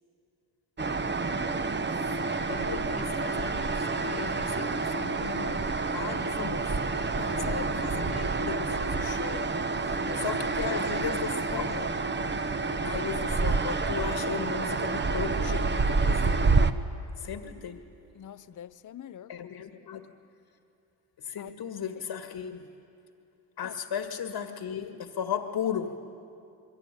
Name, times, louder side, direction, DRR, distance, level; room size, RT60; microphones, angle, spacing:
sound 1, 0.8-16.7, right 3 dB, 20° right, 1.0 m, -28 dB
voice 1, 2.2-5.6 5.9-6.8 7.4-12.0 12.8-16.4 17.2-17.8 19.3-20.1 21.2-22.7 23.6-26.0, left 8 dB, 55° left, 6 dB, 2.0 m, -36 dB
voice 2, 7.1-7.6 9.9-10.4 10.7-11.5 18.1-19.7 21.4-21.5 23.6-23.8, left 9 dB, 40° left, 14 dB, 0.8 m, -45 dB
27.5 x 22.0 x 9.3 m, 2.7 s
cardioid pair, 90°, 49 cm